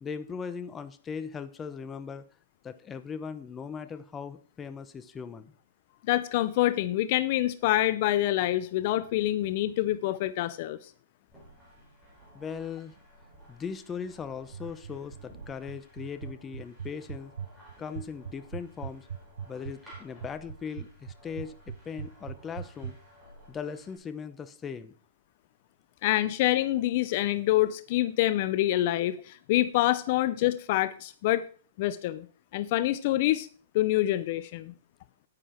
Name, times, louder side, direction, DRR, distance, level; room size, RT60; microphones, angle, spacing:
voice 1, 0.0-2.2 2.6-5.5 12.3-12.9 13.5-17.3 17.8-19.1 19.4-23.0 23.5-24.9, left 6 dB, 15° left, 11 dB, 0.8 m, -39 dB
voice 2, 6.1-10.9 26.0-31.4 31.8-32.3 32.5-33.5 33.7-34.7, left 15 dB, 45° left, 14 dB, 0.5 m, -26 dB
sound 1, 11.3-24.0, equal, 5° right, 5.9 m, -55 dB
sound 2, 14.5-22.9, right 7 dB, 80° right, 0.8 m, -39 dB
10.0 x 9.8 x 4.4 m, 0.42 s
hypercardioid pair, 150°, 0 cm